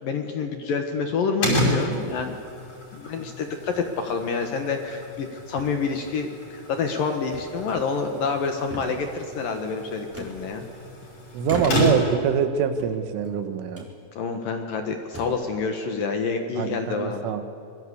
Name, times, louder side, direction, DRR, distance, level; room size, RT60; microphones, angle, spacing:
voice 1, 0.0-2.3 2.9-10.6 14.2-17.2, left 5 dB, 60° left, 5 dB, 2.6 m, -28 dB
sound 1, 0.9-1.4 2.2-2.9 3.7-3.9 4.3-4.4 4.9-5.3 5.6-6.3 7.3-8.0 8.4-9.2 10.1-11.0 11.4-12.1 12.7-13.3 13.7-13.9 14.6-14.7 15.0-15.5, right 1 dB, 5° right, 3.5 m, -40 dB
sound 2, 1.4-12.3, equal, 35° left, 7.4 m, -31 dB
voice 2, 11.3-13.9 16.6-17.4, right 7 dB, 80° right, 9 dB, 3.9 m, -25 dB
26.5 x 22.5 x 8.3 m, 2.3 s
omnidirectional pair, 5.6 m